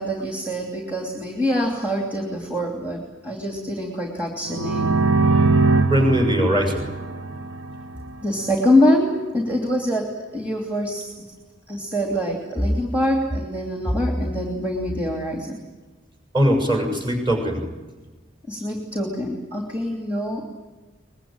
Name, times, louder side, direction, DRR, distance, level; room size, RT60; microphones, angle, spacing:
voice 1, 0.0-5.0 8.2-11.1 11.7-15.6 18.5-20.4, left 1 dB, 10° right, 1 dB, 2.9 m, -24 dB
sound 1, 4.5-8.2, right 3 dB, 80° right, 1.0 m, -21 dB
voice 2, 5.9-6.9 16.3-17.7, equal, 25° right, 4 dB, 6.5 m, -20 dB
23.5 x 21.5 x 9.0 m, 1.2 s
head